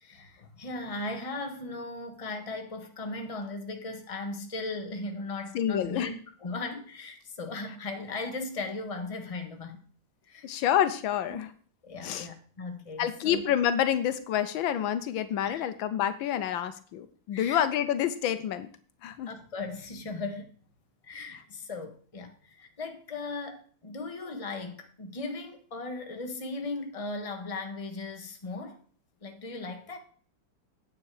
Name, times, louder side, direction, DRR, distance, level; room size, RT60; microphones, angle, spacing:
voice 1, 0.0-9.8 10.2-10.5 11.3-11.4 11.8-13.4 15.4-15.7 17.3-17.6 19.3-20.5 21.0-28.8 29.2-30.0, left 3 dB, 20° left, 1.3 m, -37 dB
voice 2, 5.5-6.1 10.4-11.5 12.0-12.3 13.0-18.7 19.0-19.3, left 10 dB, 80° left, 1.5 m, -28 dB
9.4 x 8.6 x 4.8 m
omnidirectional pair, 2.1 m